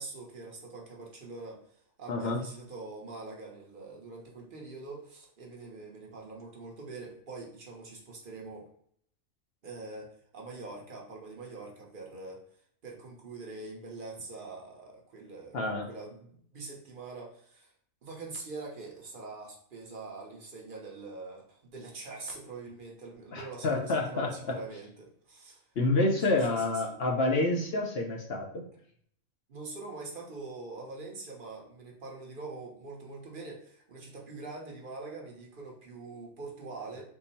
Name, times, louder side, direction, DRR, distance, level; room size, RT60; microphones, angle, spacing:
voice 1, 0.0-1.7 2.0-8.7 9.6-12.5 12.8-15.6 15.8-17.7 18.0-25.6 26.3-26.9 29.5-37.0, right 3 dB, 45° right, -1 dB, 0.8 m, -44 dB
voice 2, 2.1-2.4 15.5-15.9 23.3-24.6 25.8-28.6, left 2 dB, 60° left, 0 dB, 0.7 m, -28 dB
3.7 x 2.0 x 4.0 m, 0.65 s
omnidirectional pair, 1.5 m